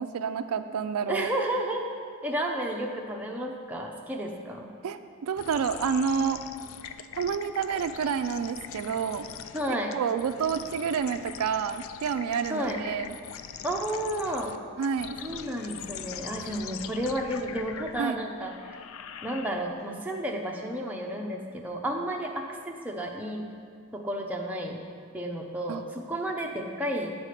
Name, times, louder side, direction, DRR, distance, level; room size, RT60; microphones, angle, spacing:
voice 1, 0.0-1.3 4.8-6.4 7.2-9.3 9.7-13.2 14.8-15.2 18.0-18.2 25.7-25.8, right 6 dB, 85° right, 10 dB, 0.3 m, -29 dB
voice 2, 1.1-1.9 2.2-4.7 9.5-10.0 12.5-12.8 13.6-14.6 15.2-18.8 19.2-23.5 23.9-24.8 25.1-27.2, right 1 dB, 5° right, 0 dB, 0.6 m, -32 dB
sound 1, 5.4-19.9, left 9 dB, 65° left, 0.3 m, -42 dB
8.2 x 4.1 x 6.5 m, 2.1 s
head